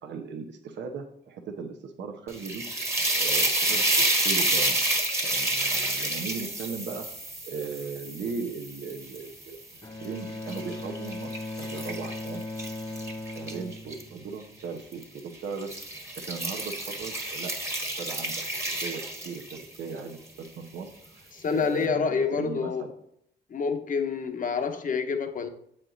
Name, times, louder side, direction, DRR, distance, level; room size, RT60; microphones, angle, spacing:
voice 1, 0.0-2.6 3.1-4.8 5.2-7.1 7.5-11.3 11.6-12.4 13.3-15.7 16.3-18.3 18.7-20.2 20.6-22.9, right 5 dB, 65° right, 0.9 m, -37 dB
sound 1, 2.3-9.5 10.0-14.0 14.9-15.2 15.6-19.8, right 1 dB, 15° right, 1.4 m, -29 dB
Bowed string instrument, 9.8-14.8, left 2 dB, 15° left, 0.5 m, -38 dB
voice 2, 21.3-22.9 23.5-25.5, left 5 dB, 40° left, 0.9 m, -28 dB
7.8 x 4.4 x 3.9 m
cardioid pair, 90°, 20 cm